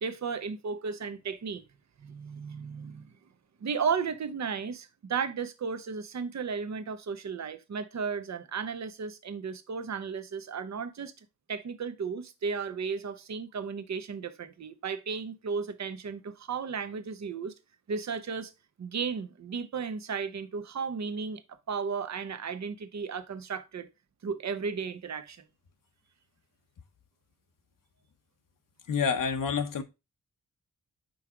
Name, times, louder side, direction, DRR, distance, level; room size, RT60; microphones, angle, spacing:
voice 1, 0.0-1.6 2.0-3.1 3.6-17.5 17.9-18.5 18.8-23.9 24.2-25.4, right 5 dB, 60° right, 0.8 m, -34 dB
voice 2, 28.9-29.8, left 6 dB, 80° left, 0.9 m, -28 dB
5.5 x 4.6 x 3.7 m
cardioid pair, 80°, 32 cm